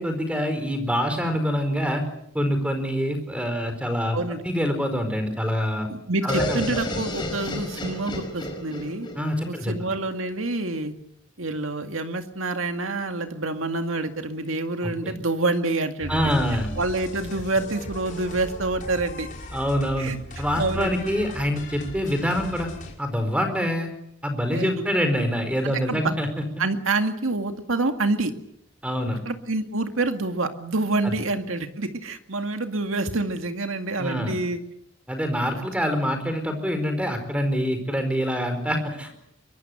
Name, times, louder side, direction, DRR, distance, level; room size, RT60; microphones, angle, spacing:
voice 1, 0.0-2.0 2.3-4.2 4.4-5.9 6.2-7.0 9.2-9.7 14.8-15.2 16.1-16.7 19.5-22.7 23.0-23.9 24.2-26.4 28.8-29.2 31.0-31.2 34.0-34.4 35.1-39.1, equal, 5° right, 7 dB, 4.6 m, -25 dB
voice 2, 4.1-4.4 5.9-9.1 9.5-10.9 11.4-16.3 16.8-19.3 20.0-20.1 20.6-20.9 24.5-24.7 25.6-26.1 26.6-28.3 29.3-34.6 35.6-35.7, right 2 dB, 90° right, 6 dB, 2.2 m, -27 dB
sound 1, 6.3-10.1, left 1 dB, 20° left, 5.3 m, -31 dB
sound 2, 16.0-22.9, equal, 40° left, 5.4 m, -37 dB
23.5 x 23.0 x 8.0 m, 0.75 s
head